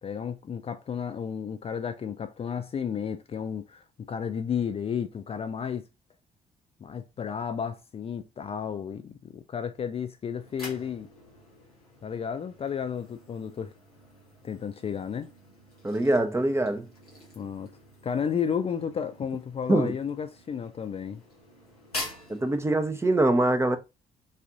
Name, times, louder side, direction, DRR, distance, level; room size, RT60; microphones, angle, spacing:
voice 1, 0.0-5.8 6.8-11.1 12.0-13.7 14.4-15.3 17.4-17.7 18.0-21.2, left 7 dB, 30° left, 0.5 m, -32 dB
sound 1, 10.2-23.2, left 2 dB, 90° left, 0.9 m, -46 dB
voice 2, 15.8-16.9 19.7-19.9 22.3-23.8, right 1 dB, 15° right, 0.8 m, -23 dB
5.5 x 2.6 x 3.6 m
figure-of-eight pair, 45°, 19 cm